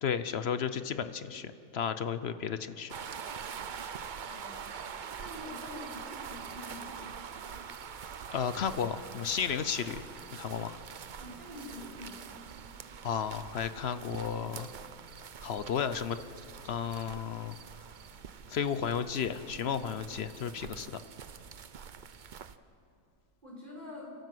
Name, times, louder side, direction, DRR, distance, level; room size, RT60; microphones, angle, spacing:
voice 1, 0.0-2.9 8.3-10.0 10.3-10.8 13.0-14.7 15.4-16.2 16.6-17.5 18.5-21.0, left 7 dB, 55° left, 12 dB, 0.8 m, -33 dB
sound 1, 2.9-22.6, right 7 dB, 50° right, 0.5 m, -45 dB
voice 2, 4.2-4.6 5.2-7.1 11.2-12.3 23.4-24.1, left 1 dB, 30° right, -2 dB, 4.9 m, -46 dB
29.5 x 13.0 x 7.7 m, 2.6 s
omnidirectional pair, 1.6 m